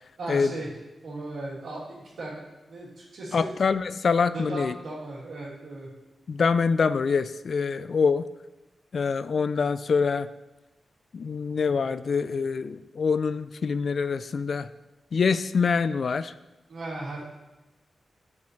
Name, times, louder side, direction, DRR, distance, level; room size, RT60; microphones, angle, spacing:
voice 1, 0.2-0.7 1.0-2.4 2.7-3.5 4.3-5.9 7.6-7.8 16.7-17.2, right 2 dB, 80° right, -5 dB, 2.9 m, -36 dB
voice 2, 3.3-4.7 6.3-8.3 8.9-10.3 11.1-14.7 15.1-16.3, left 5 dB, 60° left, 14 dB, 0.3 m, -25 dB
10.0 x 7.1 x 3.2 m, 1.1 s
cardioid pair, 75°, 0 cm